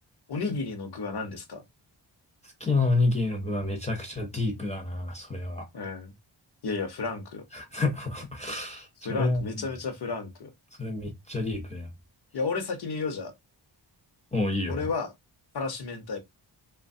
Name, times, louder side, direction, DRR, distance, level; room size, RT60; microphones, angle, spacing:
voice 1, 0.3-1.6 5.7-6.1 6.6-7.5 9.0-10.5 12.3-13.3 14.7-15.1 15.5-16.2, left 4 dB, 55° left, 0.7 m, -32 dB
voice 2, 2.4-5.7 7.5-9.4 10.8-11.9 14.3-14.8, left 2 dB, 15° left, 0.6 m, -29 dB
3.0 x 2.2 x 2.6 m
wide cardioid pair, 130°, 48 cm